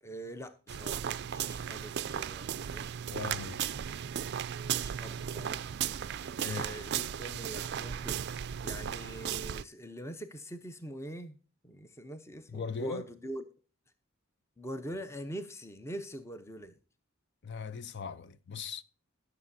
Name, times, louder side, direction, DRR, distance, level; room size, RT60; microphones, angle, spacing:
voice 1, 0.0-2.8 4.5-5.7 6.4-8.2 8.6-11.4 11.6-13.4 14.6-16.8, right 1 dB, 15° left, 0.7 m, -43 dB
sound 1, 0.7-9.6, right 9 dB, 50° right, 0.4 m, -36 dB
voice 2, 3.1-3.6 6.4-6.6 12.5-13.0 17.4-18.8, left 6 dB, 55° left, 0.6 m, -39 dB
18.5 x 6.7 x 2.7 m
head